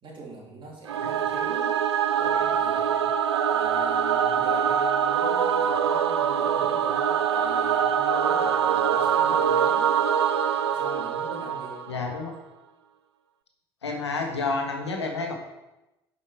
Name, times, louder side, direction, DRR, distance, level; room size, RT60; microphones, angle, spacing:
voice 1, 0.0-1.7 2.2-9.9 10.6-11.8, right 3 dB, 35° right, -3 dB, 3.5 m, -42 dB
Singing / Musical instrument, 0.9-12.2, right 8 dB, 80° right, 0.5 m, -24 dB
voice 2, 11.9-12.3 13.8-15.3, left 3 dB, 85° left, 3 dB, 1.3 m, -29 dB
9.8 x 5.5 x 4.8 m, 0.96 s
figure-of-eight pair, 55°, 14 cm